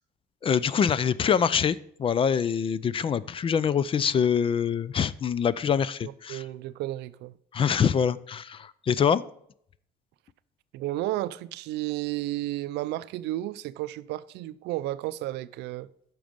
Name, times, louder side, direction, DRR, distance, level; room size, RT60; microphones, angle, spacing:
voice 1, 0.4-6.4 7.5-9.2, left 7 dB, 30° left, 0.4 m, -25 dB
voice 2, 6.0-7.3 10.7-15.9, right 15 dB, 80° right, 0.4 m, -32 dB
9.2 x 6.1 x 5.1 m
cardioid pair, 110°, 17 cm